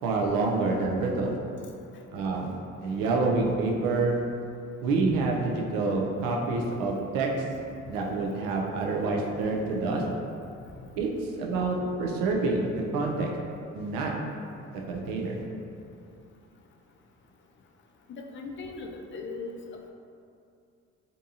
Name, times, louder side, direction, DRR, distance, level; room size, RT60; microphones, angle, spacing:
voice 1, 0.0-1.4 2.1-4.2 4.8-7.3 7.9-10.0 11.0-12.7 12.9-13.3 13.7-14.1 14.7-15.4, right 3 dB, 80° right, 0 dB, 0.5 m, -27 dB
voice 2, 18.1-19.6, left 3 dB, 35° left, 2 dB, 0.4 m, -38 dB
2.6 x 2.3 x 2.7 m, 2.5 s
supercardioid pair, 55°, 34 cm